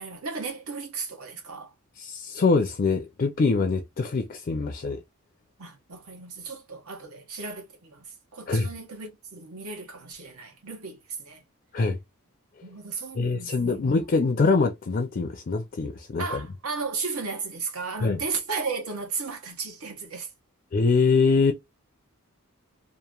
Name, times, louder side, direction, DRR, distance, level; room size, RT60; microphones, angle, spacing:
voice 1, 0.0-1.7 5.6-11.4 12.6-13.9 14.1-14.3 16.2-20.3, right 4 dB, 80° right, 1.2 m, -35 dB
voice 2, 2.0-5.0 8.5-8.7 11.7-12.0 13.2-16.4 18.0-18.2 20.7-21.5, left 4 dB, 40° left, 0.4 m, -24 dB
2.9 x 2.5 x 2.3 m
head